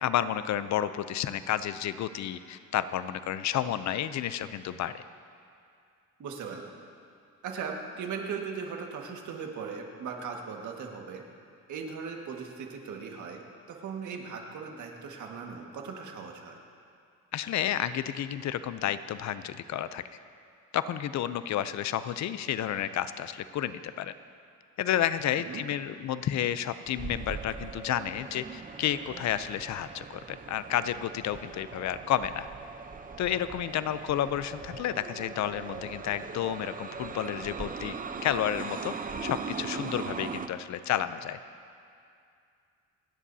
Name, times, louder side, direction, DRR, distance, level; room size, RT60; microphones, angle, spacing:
voice 1, 0.0-5.0 17.3-20.0 20.7-24.1 24.8-32.5 33.2-37.9 38.2-38.9 39.2-41.4, left 11 dB, 65° left, 13 dB, 0.6 m, -31 dB
voice 2, 6.2-6.7 7.4-11.2 11.7-13.4 13.7-16.6 25.5-25.6, right 5 dB, 75° right, 1 dB, 1.8 m, -38 dB
sound 1, 26.9-40.5, right 5 dB, 30° right, 0.8 m, -40 dB
28.5 x 10.0 x 2.8 m, 2.4 s
cardioid pair, 90°, 30 cm